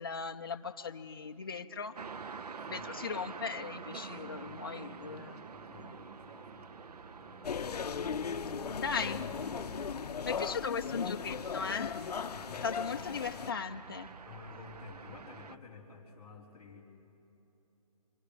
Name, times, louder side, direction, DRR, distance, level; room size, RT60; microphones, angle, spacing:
voice 1, 0.0-2.0 2.7-5.5 5.8-6.0 8.8-9.2 10.2-11.9 12.6-14.1, left 5 dB, 35° left, 6 dB, 0.6 m, -38 dB
sound 1, 2.0-15.6, right 5 dB, 85° right, 0.8 m, -47 dB
voice 2, 2.6-2.9 4.4-4.6 4.9-7.6 9.0-9.3 12.3-13.0 14.2-16.8, left 5 dB, 5° left, -16 dB, 3.0 m, -53 dB
sound 2, 7.4-13.5, left 6 dB, 85° left, 0.6 m, -37 dB
26.0 x 25.5 x 5.1 m, 3.0 s
hypercardioid pair, 180°, 20 cm